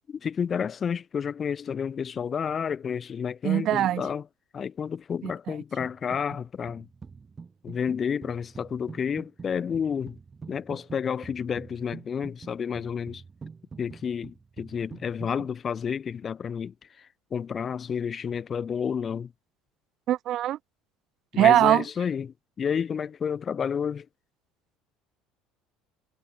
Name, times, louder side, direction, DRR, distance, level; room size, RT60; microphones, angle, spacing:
voice 1, 0.1-4.2 4.5-6.9 7.6-10.2 10.5-13.2 13.8-19.3 21.3-24.1, left 7 dB, 35° left, 1.1 m, -30 dB
voice 2, 3.4-4.0 5.2-5.3 20.1-20.6 21.4-21.8, right 13 dB, 55° right, 2.7 m, -21 dB
sound 1, 5.8-6.4 6.7-15.5, right 5 dB, 25° right, 6.3 m, -45 dB
supercardioid pair, 85°, 0 cm